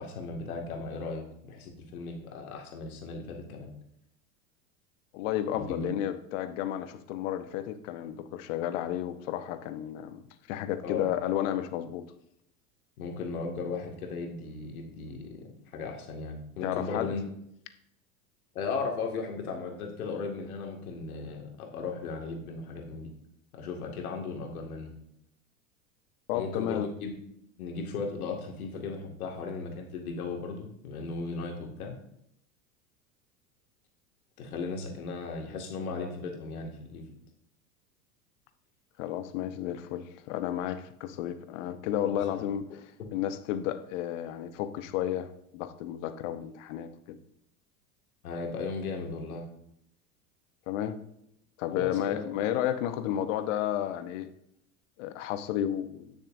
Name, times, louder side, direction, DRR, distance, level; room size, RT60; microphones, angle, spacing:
voice 1, 0.0-3.7 5.5-5.9 10.8-11.0 13.0-15.5 15.7-17.2 18.5-23.1 23.5-24.9 26.3-27.1 27.6-31.9 34.4-37.1 42.0-42.4 48.2-49.5 51.7-52.2, left 4 dB, 75° left, 2 dB, 2.1 m, -36 dB
voice 2, 5.1-10.2 10.5-12.0 16.6-17.1 26.3-26.9 39.0-42.8 43.1-45.3 45.5-47.2 50.7-51.0 51.6-54.3 55.0-56.1, left 11 dB, 60° left, 10 dB, 1.0 m, -32 dB
17.0 x 6.5 x 2.6 m, 0.76 s
hypercardioid pair, 90°, 44 cm